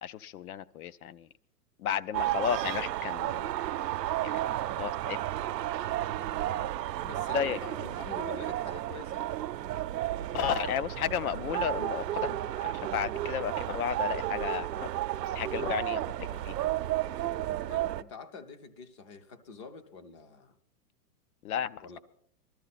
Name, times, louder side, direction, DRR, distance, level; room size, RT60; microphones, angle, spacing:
voice 1, 0.0-1.3 1.8-3.5 4.2-5.2 7.3-7.6 10.3-14.9 15.2-16.7 21.4-21.8, left 9 dB, 65° left, 16 dB, 0.7 m, -33 dB
sound 1, 2.1-18.0, right 13 dB, 90° right, 0.7 m, -32 dB
voice 2, 7.0-9.3 17.7-20.6 21.8-22.0, left 4 dB, 20° left, 10 dB, 0.5 m, -46 dB
19.0 x 13.5 x 4.2 m, 0.62 s
hypercardioid pair, 160°, 48 cm